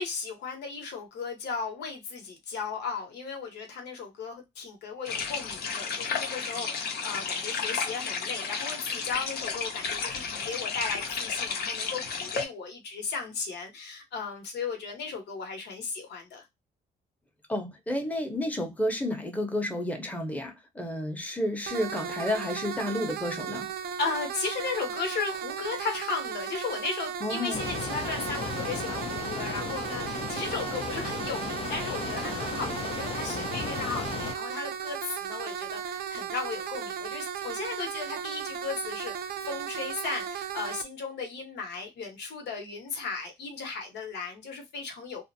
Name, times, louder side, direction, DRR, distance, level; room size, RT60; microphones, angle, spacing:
voice 1, 0.0-16.4 24.0-45.2, left 4 dB, 90° left, 0.9 m, -36 dB
sound 1, 5.1-12.4, left 5 dB, 65° left, 0.7 m, -32 dB
voice 2, 17.5-23.7 27.2-27.6, left 1 dB, 10° left, 0.7 m, -31 dB
sound 2, 21.7-40.8, right 8 dB, 65° right, 0.4 m, -36 dB
sound 3, 27.5-34.3, left 6 dB, 35° left, 0.4 m, -35 dB
2.5 x 2.0 x 2.6 m
cardioid pair, 105°, 17 cm